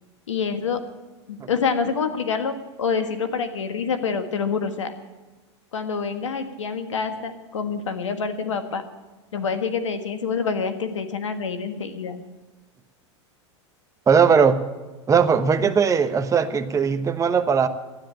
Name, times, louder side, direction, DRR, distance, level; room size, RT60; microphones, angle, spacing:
voice 1, 0.3-0.8 1.3-4.9 5.7-8.8 9.3-12.2, left 5 dB, 90° left, 8 dB, 1.6 m, -26 dB
voice 2, 14.1-14.6 15.1-17.7, right 6 dB, 20° right, 9 dB, 1.1 m, -19 dB
12.5 x 10.5 x 9.0 m, 1.2 s
hypercardioid pair, 105°, 15 cm